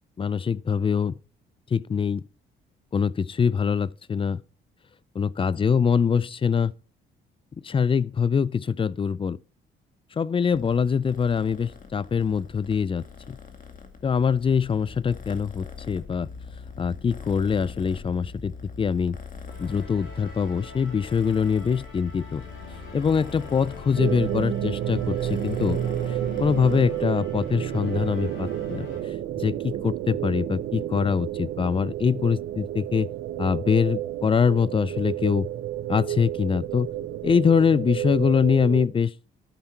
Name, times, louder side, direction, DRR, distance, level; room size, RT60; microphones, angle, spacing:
voice 1, 0.2-1.2 1.7-2.2 2.9-4.4 5.2-6.7 7.6-9.4 10.2-13.4 14.0-16.3 16.8-18.5 18.8-19.2 19.6-22.4 22.9-25.8 26.4-28.9 29.4-33.1 33.4-35.5 35.9-36.9 37.2-39.1, left 6 dB, 25° left, 0.4 m, -23 dB
Purr, 10.5-27.0, left 5 dB, 40° left, 2.1 m, -42 dB
sound 1, 19.5-29.0, left 3 dB, 80° left, 6.4 m, -44 dB
sound 2, 24.0-38.9, right 12 dB, 80° right, 0.7 m, -30 dB
13.0 x 5.5 x 4.5 m
cardioid pair, 90°, 20 cm